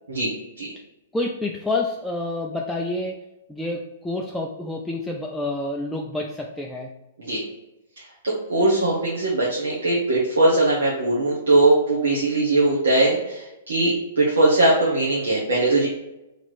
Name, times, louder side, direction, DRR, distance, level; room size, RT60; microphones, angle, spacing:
voice 1, 1.1-3.2 3.5-6.9, left 2 dB, 5° left, -1 dB, 0.4 m, -28 dB
voice 2, 8.5-15.9, right 2 dB, 75° right, -5 dB, 1.0 m, -20 dB
3.2 x 3.0 x 4.1 m, 0.95 s
hypercardioid pair, 120°, 0 cm